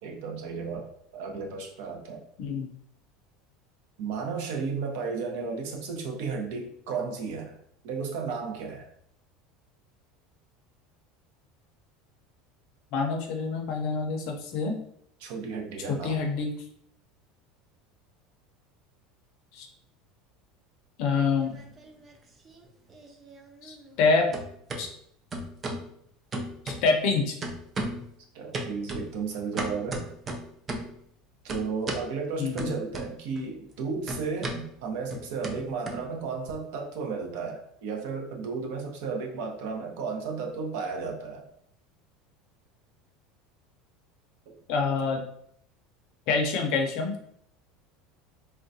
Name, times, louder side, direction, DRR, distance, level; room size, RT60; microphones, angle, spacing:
voice 1, 0.0-2.2 4.0-7.6 7.8-8.9 15.2-16.2 28.3-30.1 31.4-41.4, right 5 dB, 65° right, 2 dB, 0.7 m, -33 dB
voice 2, 2.4-2.7 12.9-14.8 15.9-16.5 19.5-19.7 21.0-21.5 23.6-24.4 24.8-24.9 26.6-27.4 32.4-32.7 44.7-45.2 46.3-47.2, left 4 dB, 50° left, 3 dB, 0.5 m, -26 dB
sound 1, 21.2-22.2 22.5-24.1 24.3-24.8 25.3-25.9 26.3-27.1 27.4-28.1 28.5-31.0 31.5-32.1 32.6-33.4 33.7-36.5, right 1 dB, 20° right, 0.4 m, -36 dB
3.7 x 2.1 x 2.7 m, 0.70 s
cardioid pair, 170°, 0 cm